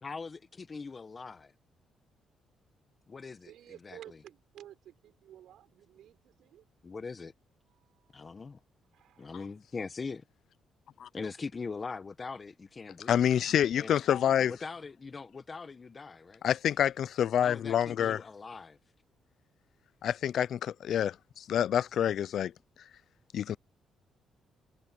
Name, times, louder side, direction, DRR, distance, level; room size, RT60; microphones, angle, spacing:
voice 1, 0.0-1.5 3.1-3.5 3.8-4.2 6.8-7.3 8.1-8.6 9.2-10.2 11.1-13.2 13.8-14.0 14.5-16.4 17.4-18.8, left 4 dB, 35° left, 1.0 m, -41 dB
voice 2, 3.4-6.6 7.7-8.4 8.9-9.4, right 11 dB, 80° right, 5.7 m, -53 dB
voice 3, 13.1-14.5 16.4-18.2 20.0-22.5 23.3-23.6, left 9 dB, 65° left, 0.5 m, -27 dB
cardioid pair, 90°, 0 cm